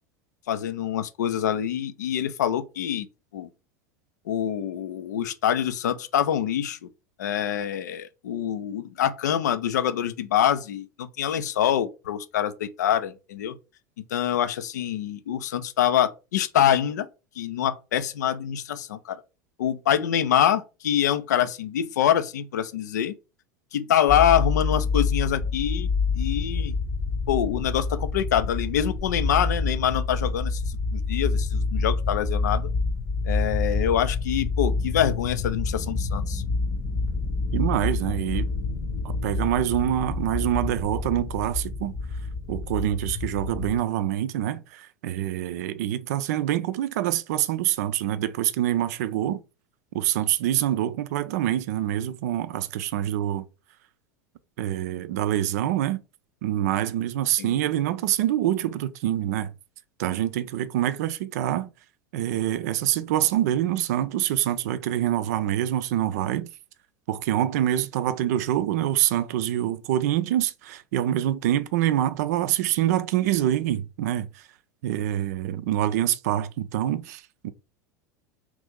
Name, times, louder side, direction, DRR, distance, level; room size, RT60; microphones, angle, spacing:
voice 1, 0.5-3.1 3.3-3.5 4.3-6.8 7.2-13.6 14.1-17.1 17.4-19.2 19.6-23.1 23.7-25.9 26.1-26.7 27.3-32.7 33.3-36.4 57.4-57.6, left 10 dB, 70° left, 0.5 m, -25 dB
sound 1, 24.1-43.8, left 4 dB, 35° left, 0.8 m, -27 dB
voice 2, 37.5-38.5 39.0-41.9 42.5-49.4 49.9-53.5 54.6-56.0 56.4-59.5 60.0-61.7 62.1-66.5 67.1-74.4 74.8-77.5, right 12 dB, 65° right, 0.4 m, -25 dB
3.0 x 2.5 x 3.6 m
figure-of-eight pair, 80°, 10 cm